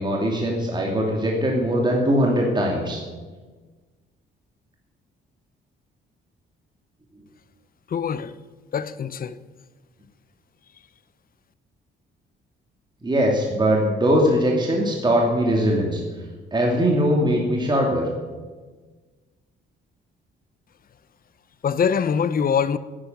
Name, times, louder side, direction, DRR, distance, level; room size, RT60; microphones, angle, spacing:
voice 1, 0.0-3.0 13.0-16.0 16.5-18.1, equal, 20° right, 2.6 m, -21 dB
voice 2, 7.9-8.3 8.7-9.4 21.6-22.8, left 7 dB, 45° left, 0.8 m, -23 dB
10.5 x 10.0 x 9.4 m
cardioid pair, 90°, 20 cm